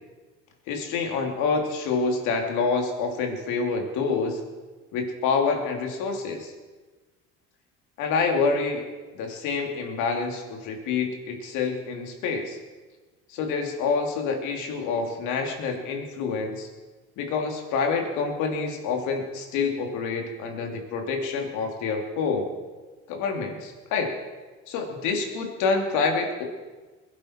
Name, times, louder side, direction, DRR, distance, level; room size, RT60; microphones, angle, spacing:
voice 1, 0.7-4.4 4.9-6.5 8.0-8.8 9.1-12.6 13.3-16.7 17.2-22.5 23.1-24.2 24.7-26.4, left 4 dB, 80° left, 3 dB, 2.9 m, -27 dB
21.5 x 11.0 x 4.5 m, 1.3 s
supercardioid pair, 95°, 30 cm